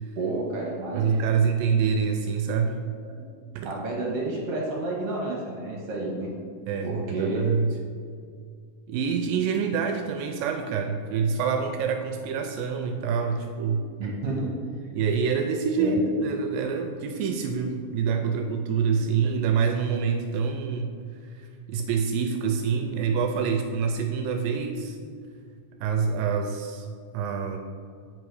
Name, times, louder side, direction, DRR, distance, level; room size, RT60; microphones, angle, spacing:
voice 1, 0.2-1.3 3.0-3.2 3.6-6.3 6.8-7.5 14.0-14.6 15.8-16.0, right 2 dB, 55° right, -3 dB, 1.9 m, -30 dB
voice 2, 0.9-2.8 3.5-3.8 6.7-7.7 8.9-13.9 14.9-20.9 21.4-25.0 25.8-26.9 27.1-27.6, right 6 dB, 80° right, 5 dB, 2.1 m, -26 dB
8.9 x 5.2 x 4.8 m, 2.2 s
omnidirectional pair, 4.2 m